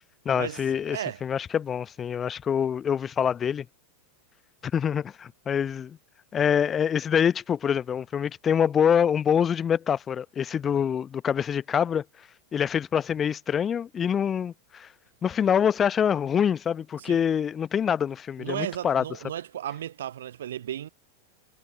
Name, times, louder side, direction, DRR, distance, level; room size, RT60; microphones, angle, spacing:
voice 1, 0.2-3.7 4.6-6.0 6.3-12.0 12.5-14.9 15.2-19.0, left 8 dB, 25° left, 0.8 m, -25 dB
voice 2, 0.9-1.2 17.0-17.2 18.4-20.9, right 11 dB, 60° right, 0.8 m, -34 dB
figure-of-eight pair, 90°, 0 cm